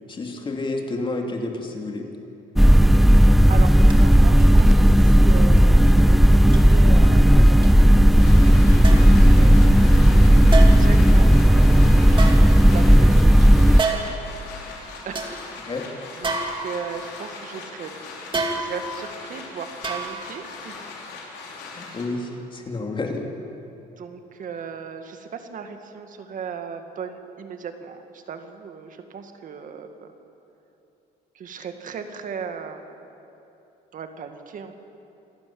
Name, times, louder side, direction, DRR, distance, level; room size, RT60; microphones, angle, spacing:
voice 1, 0.1-2.1 15.7-15.9 21.8-23.2, left 2 dB, 30° left, 3 dB, 2.8 m, -30 dB
sound 1, 2.6-13.8, equal, ahead, 0.4 m, -13 dB
voice 2, 3.5-9.6 10.8-15.9 16.1-17.9 18.5-20.9 24.0-30.1 31.3-33.0 33.9-34.7, right 6 dB, 50° right, 7 dB, 2.0 m, -37 dB
sound 2, 3.9-4.0 4.5-4.8 5.5-5.6 6.5-6.6 7.6-7.7 8.8-9.2 10.5-11.0 12.1-13.0 13.8-14.3 14.7-14.8 15.1-15.3 16.2-17.1 18.3-19.0 19.8-20.4 20.7-20.8, right 3 dB, 30° right, 2.5 m, -28 dB
sound 3, 8.2-22.0, left 4 dB, 85° left, 4.4 m, -40 dB
26.5 x 12.0 x 8.8 m, 2.8 s
cardioid pair, 110°, 17 cm